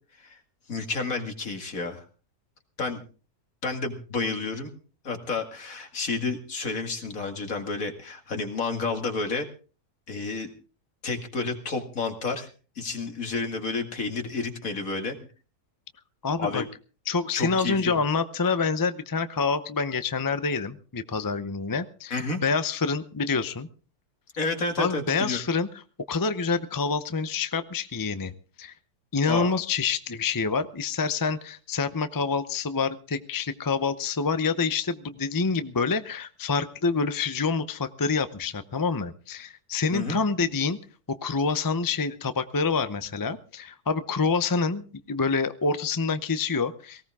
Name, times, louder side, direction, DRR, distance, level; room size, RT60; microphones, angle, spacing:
voice 1, 0.7-2.0 2.8-3.0 3.6-4.7 5.0-9.5 10.1-10.5 11.0-12.5 12.8-15.2 16.4-16.7 17.3-18.0 22.1-22.4 24.3-25.4 29.3-29.5 39.9-40.2, left 3 dB, 60° left, 5 dB, 2.5 m, -30 dB
voice 2, 16.2-16.6 17.1-23.7 24.8-25.7 26.1-28.3 28.6-28.7 29.1-40.8 41.1-47.0, left 4 dB, 25° left, 11 dB, 0.5 m, -27 dB
18.5 x 17.5 x 3.6 m, 0.37 s
omnidirectional pair, 1.6 m